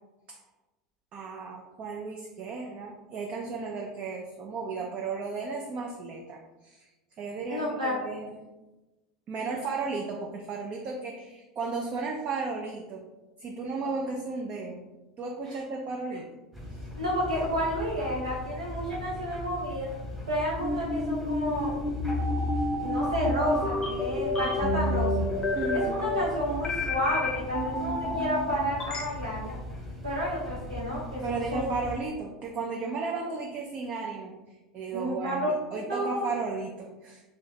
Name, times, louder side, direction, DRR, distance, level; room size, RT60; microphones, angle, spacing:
voice 1, 1.1-6.9 7.2-8.3 9.3-13.0 13.4-14.8 15.2-16.3 16.7-16.8 25.5-26.1 31.2-37.2, right 4 dB, 35° right, 0 dB, 0.4 m, -34 dB
voice 2, 7.5-7.9 15.5-15.6 17.0-19.9 20.3-21.7 22.8-25.1 25.7-29.6 30.0-31.6 34.9-35.5 35.9-36.2, equal, 80° right, -4 dB, 0.7 m, -31 dB
sound 1, 16.5-32.0, left 1 dB, 5° right, 1.1 m, -40 dB
sound 2, 20.6-29.0, left 2 dB, 20° left, 0.6 m, -29 dB
2.7 x 2.6 x 3.2 m, 1.1 s
figure-of-eight pair, 80°, 3 cm